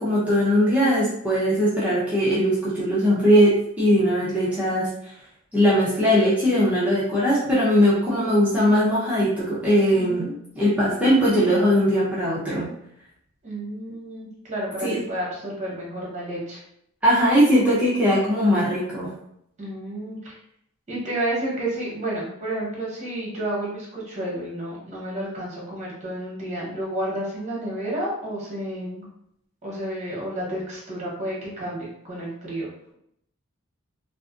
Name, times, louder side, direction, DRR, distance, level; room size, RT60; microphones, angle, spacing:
voice 1, 0.0-4.9 5.5-12.7 14.8-15.0 17.0-19.1, equal, 5° right, -9 dB, 0.6 m, -20 dB
voice 2, 9.9-10.3 13.4-16.6 19.6-20.3 20.9-29.1 29.6-32.9, right 1 dB, 35° right, -5 dB, 1.0 m, -31 dB
2.4 x 2.4 x 2.4 m, 0.74 s
head